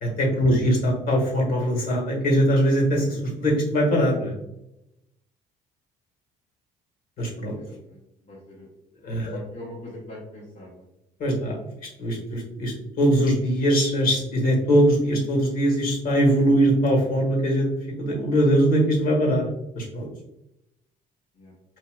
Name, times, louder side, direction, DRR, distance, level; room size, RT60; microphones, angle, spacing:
voice 1, 0.0-4.3 7.2-7.6 9.0-9.4 11.2-11.6 12.0-17.7 18.0-19.5 19.8-20.0, equal, 55° left, 0 dB, 1.5 m, -21 dB
voice 2, 7.5-8.0 8.3-8.7 9.2-10.8 21.4-21.5, left 1 dB, 40° left, -6 dB, 1.1 m, -42 dB
4.8 x 2.7 x 2.2 m, 0.86 s
cardioid pair, 110°, 17 cm